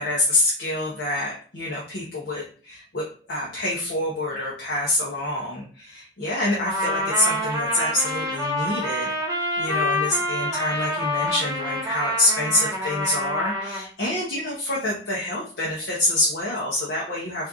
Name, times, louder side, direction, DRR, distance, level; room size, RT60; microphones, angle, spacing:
voice 1, 0.0-9.1 9.6-17.5, left 1 dB, 80° left, -5 dB, 1.1 m, -26 dB
Trumpet, 6.6-13.9, left 1 dB, 20° right, 0.9 m, -27 dB
3.2 x 2.7 x 3.5 m, 0.40 s
head